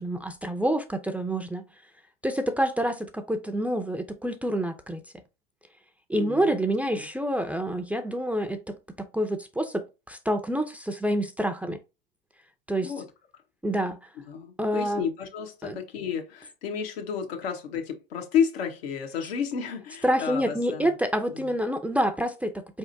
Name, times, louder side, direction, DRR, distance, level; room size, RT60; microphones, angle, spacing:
voice 1, 0.0-1.6 2.2-5.0 6.1-8.8 9.1-11.8 12.7-12.9 13.6-14.1 14.6-15.0 15.6-15.8 20.0-22.8, right 1 dB, 5° right, 0.5 m, -27 dB
voice 2, 6.1-6.5 12.8-13.1 14.3-20.9 21.3-21.5, left 7 dB, 80° left, 1.3 m, -31 dB
4.3 x 3.5 x 2.6 m
hypercardioid pair, 90°, 31 cm